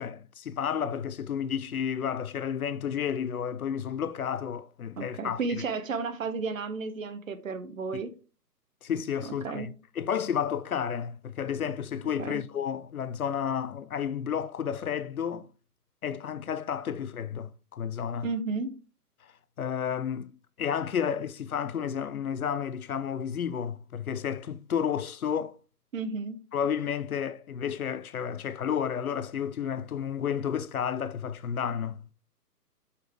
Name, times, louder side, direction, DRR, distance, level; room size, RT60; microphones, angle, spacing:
voice 1, 0.0-5.4 8.8-15.5 16.0-18.3 19.6-20.3 20.6-25.6 26.5-32.0, left 8 dB, 65° left, 0.6 m, -31 dB
voice 2, 5.0-8.1 9.2-9.7 12.2-12.4 18.2-18.8 25.9-26.4, right 4 dB, 55° right, 1.2 m, -33 dB
7.5 x 5.8 x 3.2 m
figure-of-eight pair, 135°, 48 cm